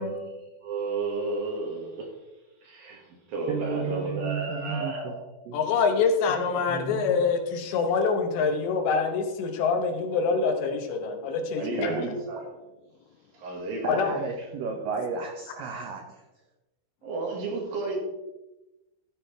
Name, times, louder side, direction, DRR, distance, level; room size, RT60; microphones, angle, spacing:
voice 1, 0.0-2.1 2.6-5.3 11.6-12.6 13.3-14.1 17.0-18.0, right 3 dB, 60° right, 0 dB, 3.1 m, -32 dB
voice 2, 3.5-5.1 5.5-5.8 6.7-7.1 11.8-12.2 13.8-16.2, right 5 dB, 85° right, 3 dB, 1.9 m, -33 dB
voice 3, 5.5-12.1 13.8-14.1, left 5 dB, 75° left, 5 dB, 3.1 m, -25 dB
14.0 x 9.2 x 3.4 m, 1.0 s
omnidirectional pair, 5.4 m